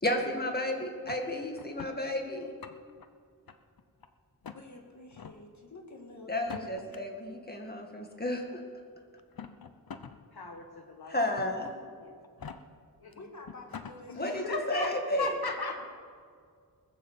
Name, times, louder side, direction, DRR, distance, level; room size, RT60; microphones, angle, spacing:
voice 1, 0.0-2.5 6.3-8.6 11.1-11.7 14.2-15.3, left 1 dB, 25° left, 2 dB, 2.0 m, -32 dB
sound 1, 1.0-2.0 2.4-3.1 3.5-4.1 4.4-4.6 5.1-5.4 6.3-7.0 8.0-8.1 9.2-10.2 10.6-10.7 11.4-11.7 12.2-12.6 13.1-13.2 13.4-14.0, left 7 dB, 70° left, 0.8 m, -44 dB
voice 2, 4.5-6.9 13.1-14.9 15.4-15.6, left 2 dB, 50° left, 2 dB, 1.9 m, -49 dB
voice 3, 10.3-11.2 12.0-12.1 13.0-13.1 14.1-14.9 15.2-15.8, left 3 dB, 90° left, 4 dB, 1.7 m, -36 dB
20.0 x 7.4 x 7.5 m, 2.1 s
wide cardioid pair, 90°, 37 cm